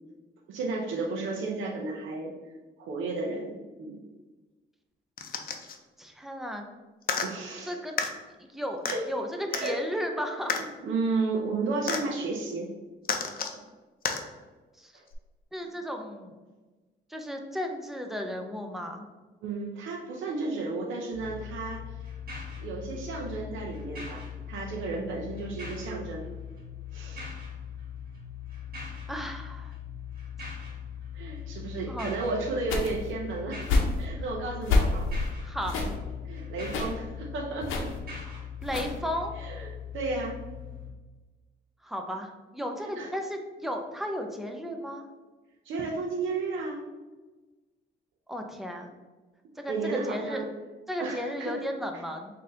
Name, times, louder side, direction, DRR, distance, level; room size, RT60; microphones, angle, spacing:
voice 1, 0.5-2.3 2.8-4.0 7.2-7.8 8.9-9.0 9.5-9.8 10.5-12.7 13.4-13.5 14.9-15.0 19.4-22.0 22.6-26.3 26.9-27.3 31.1-33.6 34.0-35.1 36.2-37.9 39.4-40.4 42.8-43.1 45.6-46.8 49.7-50.5 51.0-51.6, right 3 dB, 80° right, -1 dB, 0.6 m, -33 dB
sound 1, 5.2-5.8 7.0-7.3 8.0-8.1 8.8-9.0 9.5-9.7 10.5-10.6 11.9-12.0 13.0-13.6 14.0-14.2 15.1-15.2, left 6 dB, 50° left, 0.6 m, -30 dB
voice 2, 6.0-6.6 7.6-7.9 8.4-10.6 14.8-14.9 15.5-16.4 17.1-19.1 29.1-29.8 31.9-32.2 35.4-35.7 38.2-39.3 41.8-45.1 48.3-48.9 49.6-50.4 50.9-52.4, equal, ahead, 3 dB, 0.6 m, -34 dB
sound 2, 21.1-40.9, left 7 dB, 50° right, 1.5 m, -40 dB
sound 3, 32.7-33.1 33.6-34.0 34.6-35.3 35.6-36.0 36.6-36.9 37.6-38.0 38.6-39.0, left 3 dB, 85° left, 0.7 m, -27 dB
3.8 x 2.7 x 3.8 m, 1.2 s
cardioid pair, 90°, 20 cm